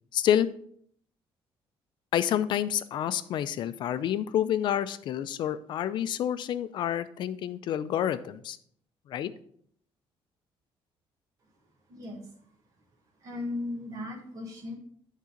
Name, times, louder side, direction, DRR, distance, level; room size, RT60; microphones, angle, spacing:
voice 1, 0.1-0.5 2.1-8.6 9.1-9.3, left 10 dB, 50° left, 13 dB, 0.4 m, -28 dB
voice 2, 11.9-12.3 13.2-14.7, left 2 dB, 35° right, -1 dB, 1.8 m, -36 dB
8.5 x 3.7 x 5.1 m, 0.63 s
cardioid pair, 175°, 10 cm